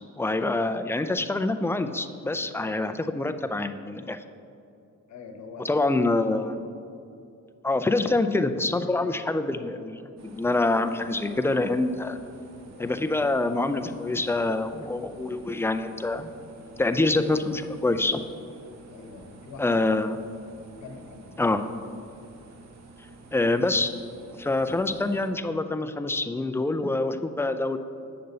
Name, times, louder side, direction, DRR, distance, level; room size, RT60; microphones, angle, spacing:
voice 1, 0.2-4.2 5.6-6.6 7.6-12.2 12.8-16.3 16.8-18.2 19.6-20.2 21.4-21.6 23.3-23.9 24.4-27.8, left 2 dB, 10° left, 9 dB, 0.3 m, -26 dB
voice 2, 5.1-5.7 6.5-6.6 7.7-7.8 12.6-13.0 18.9-19.7 20.8-21.5, left 5 dB, 70° left, 5 dB, 1.0 m, -44 dB
sound 1, 10.2-25.3, right 2 dB, 60° right, 1.0 m, -49 dB
7.7 x 6.7 x 4.0 m, 2.6 s
cardioid pair, 90°, 30 cm